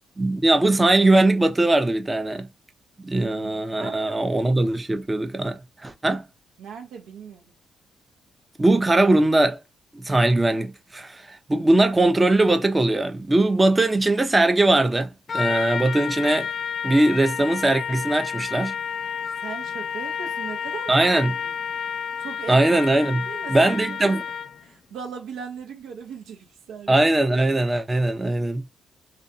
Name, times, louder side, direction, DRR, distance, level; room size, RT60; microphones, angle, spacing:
voice 1, 0.2-2.5 3.0-6.2 8.6-9.6 9.9-16.5 16.8-18.7 20.9-21.3 22.5-23.2 23.5-24.2 26.9-28.6, right 2 dB, 20° right, 0.5 m, -20 dB
voice 2, 3.2-4.2 6.6-7.5 19.4-21.0 21.4-21.5 22.2-22.6 23.1-24.0 24.6-26.9, right 6 dB, 85° right, 0.7 m, -38 dB
Trumpet, 15.3-24.6, left 7 dB, 55° left, 0.3 m, -30 dB
2.5 x 2.3 x 2.7 m
supercardioid pair, 60°, 0 cm